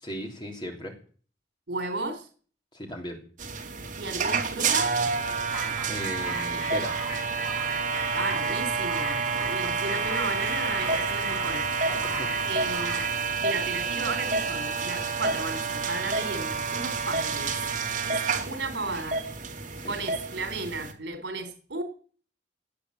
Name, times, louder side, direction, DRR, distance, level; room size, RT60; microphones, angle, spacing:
voice 1, 0.0-1.0 2.7-3.2 5.8-7.0 11.8-12.4 19.8-20.0, equal, 25° left, 2 dB, 3.4 m, -37 dB
voice 2, 1.7-2.3 4.0-4.9 8.1-11.7 12.4-13.1 13.4-17.6 18.1-18.2 18.5-19.2 19.8-21.8, right 3 dB, 80° right, 6 dB, 3.4 m, -34 dB
sound 1, 3.4-20.9, right 4 dB, 45° right, 2.4 m, -29 dB
sound 2, 5.5-13.2, right 2 dB, 5° right, 4.2 m, -38 dB
18.0 x 8.1 x 7.9 m, 0.43 s
head